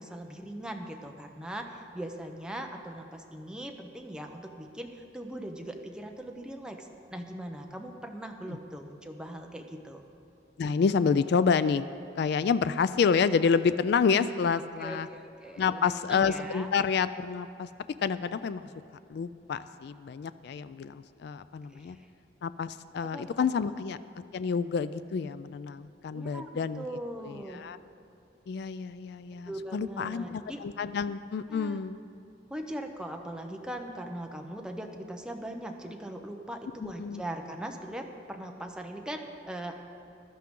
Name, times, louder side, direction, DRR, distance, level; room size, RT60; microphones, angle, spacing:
voice 1, 0.0-10.0 14.8-16.7 21.7-22.1 23.0-23.5 26.1-27.6 29.3-30.6 31.5-31.8 32.5-39.7, right 1 dB, 5° right, 3 dB, 0.8 m, -40 dB
voice 2, 10.6-11.8 12.2-15.1 15.6-17.7 18.0-18.6 19.1-22.0 22.4-24.0 24.3-26.8 27.2-27.8 28.5-32.0 36.8-37.2, left 6 dB, 60° left, 14 dB, 0.3 m, -28 dB
15.0 x 11.5 x 3.7 m, 2.5 s
head